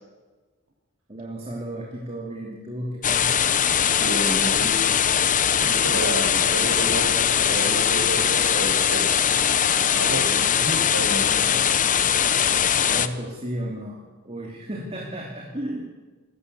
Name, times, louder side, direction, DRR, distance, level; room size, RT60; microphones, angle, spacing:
voice 1, 1.1-3.3 10.1-10.6 11.1-11.5 12.7-15.8, right 1 dB, 30° right, -1 dB, 3.0 m, -34 dB
sound 1, 3.0-13.1, left 8 dB, 35° left, 0.9 m, -21 dB
voice 2, 4.0-4.8 5.6-9.1 9.9-11.2, right 1 dB, 85° right, 1 dB, 6.8 m, -30 dB
26.5 x 14.0 x 8.3 m, 1.3 s
head